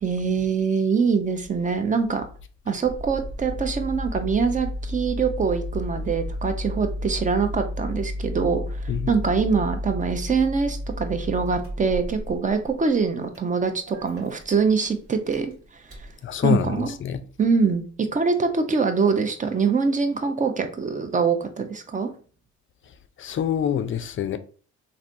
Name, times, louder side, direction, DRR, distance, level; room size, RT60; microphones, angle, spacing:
voice 1, 0.0-2.3 2.7-15.5 16.0-16.1 16.4-16.9 17.4-22.1, right 5 dB, 25° right, 0.5 m, -24 dB
Engine starting, 2.8-16.1, left 1 dB, 50° right, 1.3 m, -33 dB
voice 2, 16.2-17.2 23.2-24.4, left 8 dB, 45° left, 0.4 m, -25 dB
3.2 x 2.5 x 2.5 m
cardioid pair, 90°, 30 cm